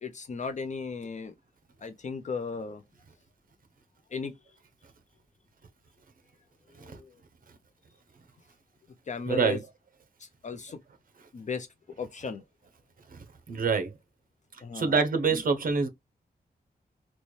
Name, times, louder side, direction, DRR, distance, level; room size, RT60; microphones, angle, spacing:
voice 1, 0.0-1.3 1.8-2.8 4.1-4.3 6.8-7.1 9.1-9.6 10.2-10.8 11.3-11.7 12.0-12.4 14.6-14.9, left 5 dB, 45° left, 0.5 m, -35 dB
voice 2, 9.3-9.6 13.1-13.9 14.7-15.9, right 5 dB, 60° right, 0.8 m, -26 dB
4.0 x 2.2 x 3.1 m
wide cardioid pair, 165°, 17 cm